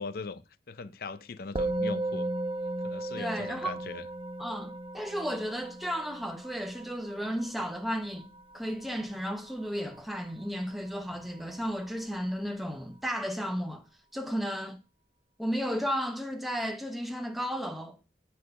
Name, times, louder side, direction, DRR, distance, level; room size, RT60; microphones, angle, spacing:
voice 1, 0.0-2.3 2.8-4.1, left 4 dB, 55° left, 0.5 m, -40 dB
Musical instrument, 1.6-11.1, right 2 dB, 30° right, 0.6 m, -36 dB
voice 2, 3.2-3.8 4.4-13.8 14.1-14.8 15.4-18.0, equal, ahead, 0.8 m, -34 dB
8.2 x 4.5 x 5.2 m
head